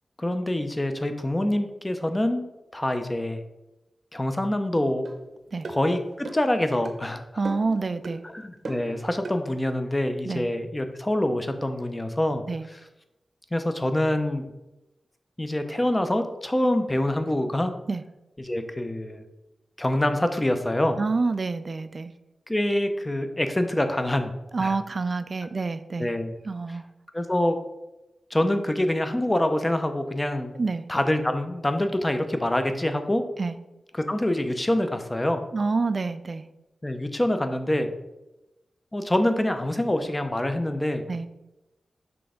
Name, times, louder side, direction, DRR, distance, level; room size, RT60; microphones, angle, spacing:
voice 1, 0.2-2.5 2.7-3.4 4.1-5.1 5.7-7.2 8.2-12.4 13.5-14.4 15.4-17.7 18.4-19.2 19.8-21.0 22.5-24.3 24.6-24.8 26.0-26.3 27.1-27.6 28.3-30.5 30.9-33.2 33.9-35.4 36.8-37.9 38.9-41.0, left 1 dB, 20° left, 8 dB, 0.6 m, -25 dB
sound 1, 5.1-5.2 5.6-5.8 6.3-6.5 6.8-7.0 7.5-7.8 8.1-8.2 8.7-8.9 9.2-9.4, right 2 dB, 65° right, 0.8 m, -36 dB
voice 2, 7.4-8.2 10.2-10.5 12.5-12.7 17.9-18.0 21.0-22.1 24.5-26.1 26.4-26.8 30.5-30.9 33.4-33.5 35.5-36.4 41.1-41.3, right 4 dB, 45° right, 12 dB, 0.4 m, -27 dB
6.1 x 3.4 x 5.0 m, 0.97 s
wide cardioid pair, 95°, 0 cm